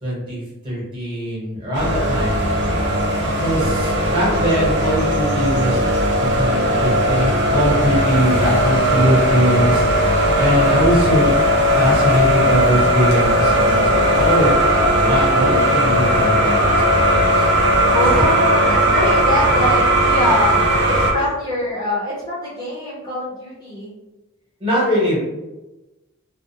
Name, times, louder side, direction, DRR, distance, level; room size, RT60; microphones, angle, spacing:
voice 1, 0.0-2.4 3.2-5.9 6.3-11.4 11.7-17.5 18.0-18.1 21.1-21.3 24.6-25.2, equal, 25° right, -7 dB, 1.0 m, -21 dB
sound 1, 1.7-21.1, equal, 55° right, 0.5 m, -17 dB
voice 2, 17.9-23.9, left 1 dB, 20° left, -11 dB, 0.7 m, -23 dB
2.4 x 2.1 x 2.7 m, 1.1 s
head